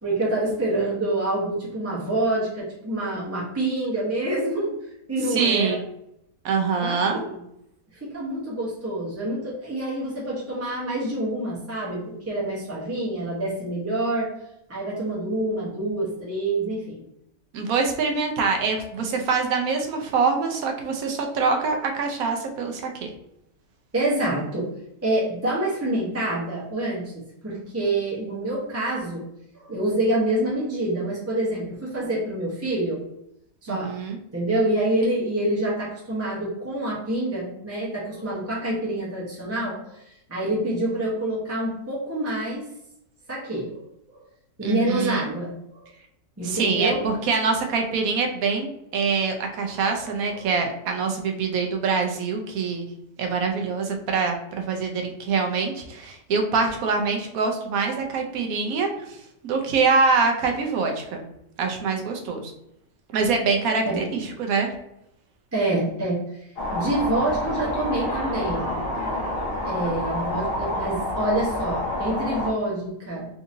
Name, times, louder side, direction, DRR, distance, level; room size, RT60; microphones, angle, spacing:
voice 1, 0.0-4.7 5.1-5.8 6.8-7.4 8.1-14.3 14.7-17.0 23.9-24.6 25.0-29.2 29.5-33.0 33.6-33.9 34.3-40.0 40.3-42.6 43.3-43.8 44.1-44.2 44.6-45.9 46.4-47.0 49.7-50.4 63.8-64.0 65.5-66.2 66.7-68.8 69.4-73.3, right 1 dB, 15° right, -6 dB, 0.6 m, -27 dB
voice 2, 5.3-5.8 6.4-7.2 17.5-23.1 33.7-34.2 44.6-45.3 46.4-48.7 48.9-52.9 53.2-59.2 59.4-61.2 61.6-62.5 63.1-64.7, right 4 dB, 70° right, 3 dB, 1.1 m, -24 dB
sound 1, 66.6-72.5, left 1 dB, 55° left, 0.7 m, -28 dB
3.7 x 2.7 x 2.6 m, 0.78 s
omnidirectional pair, 1.6 m